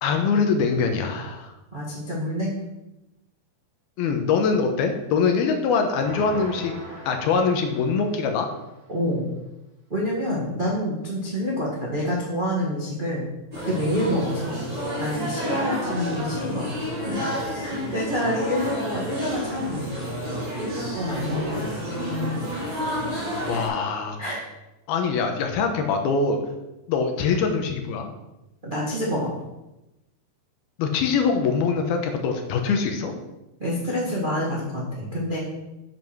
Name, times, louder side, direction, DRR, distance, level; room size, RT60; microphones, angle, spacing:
voice 1, 0.0-1.5 4.0-6.7 7.1-8.5 23.5-24.2 24.9-26.4 26.9-28.1 30.8-33.1, left 5 dB, 75° left, 5 dB, 2.7 m, -23 dB
voice 2, 1.7-2.6 8.9-9.3 9.9-13.2 13.6-14.6 15.0-16.7 17.0-17.3 17.6-20.2 20.6-21.6 24.2-24.5 28.6-29.3 33.6-35.4, equal, 70° right, -4 dB, 0.4 m, -27 dB
sound 1, 6.0-8.7, right 1 dB, 25° right, 4.2 m, -40 dB
sound 2, 13.5-23.7, equal, 10° right, 3.7 m, -30 dB
7.6 x 7.5 x 6.1 m, 0.96 s
omnidirectional pair, 4.8 m